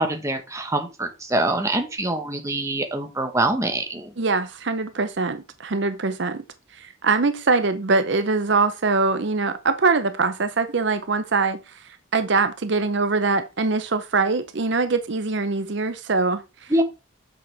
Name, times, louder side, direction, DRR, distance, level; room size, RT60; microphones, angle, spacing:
voice 1, 0.0-4.1 16.7-16.8, right 1 dB, 15° right, 1.0 m, -24 dB
voice 2, 4.2-6.4 7.0-11.6 12.1-16.4, right 4 dB, 60° right, 0.6 m, -22 dB
7.7 x 6.3 x 3.3 m
head